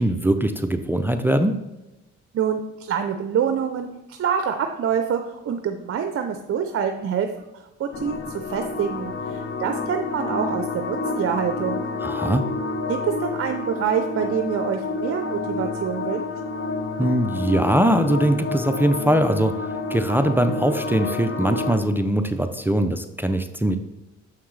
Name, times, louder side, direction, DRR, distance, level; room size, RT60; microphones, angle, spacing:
voice 1, 0.0-1.6 12.0-12.4 17.0-19.5 19.9-23.8, right 1 dB, 5° right, 8 dB, 0.4 m, -21 dB
voice 2, 2.3-7.5 7.8-11.8 12.9-16.2, right 7 dB, 50° right, 6 dB, 0.6 m, -26 dB
sound 1, 7.9-21.8, left 3 dB, 40° left, 0.8 m, -29 dB
7.0 x 5.8 x 3.2 m, 0.98 s
cardioid pair, 90°, 30 cm